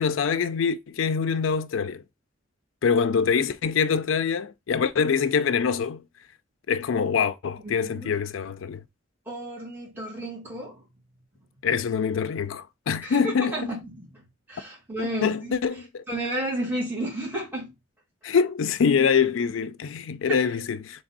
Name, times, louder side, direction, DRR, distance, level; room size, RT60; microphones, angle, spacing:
voice 1, 0.0-2.0 2.8-6.0 6.7-8.8 11.6-13.6 15.0-16.0 18.2-21.0, left 6 dB, 75° left, 0.4 m, -24 dB
voice 2, 7.6-8.2 9.3-10.8 13.0-14.2 14.5-15.6 16.1-17.7 20.3-20.5, right 1 dB, 10° right, 2.1 m, -32 dB
3.4 x 3.3 x 4.0 m
head